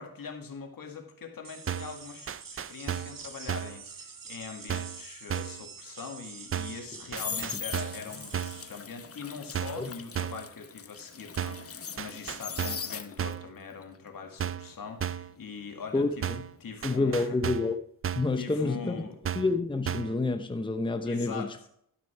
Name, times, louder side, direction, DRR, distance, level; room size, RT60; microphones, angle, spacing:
voice 1, 0.0-17.4 18.4-19.2 21.1-21.5, left 5 dB, 70° left, 1.9 m, -42 dB
sound 1, 1.4-8.9, right 5 dB, 65° right, 1.6 m, -47 dB
sound 2, 1.7-2.0 2.3-3.2 3.5-3.8 4.7-5.0 5.3-5.6 6.5-6.8 7.1-8.1 8.3-8.7 9.5-9.9 10.2-10.5 11.4-11.7 12.0-12.9 13.2-13.5 14.4-14.7 15.0-15.3 16.2-16.5 16.8-17.8 18.0-18.4 19.2-19.6 19.9-20.2, right 9 dB, 40° right, 0.4 m, -34 dB
sound 3, 6.7-13.5 13.8-16.7 17.0-17.3, left 6 dB, 40° left, 0.8 m, -40 dB
voice 2, 15.9-16.4 16.8-17.8 18.1-18.9 19.3-21.5, left 3 dB, 15° left, 0.8 m, -28 dB
12.5 x 6.1 x 4.7 m
cardioid pair, 80°, 35 cm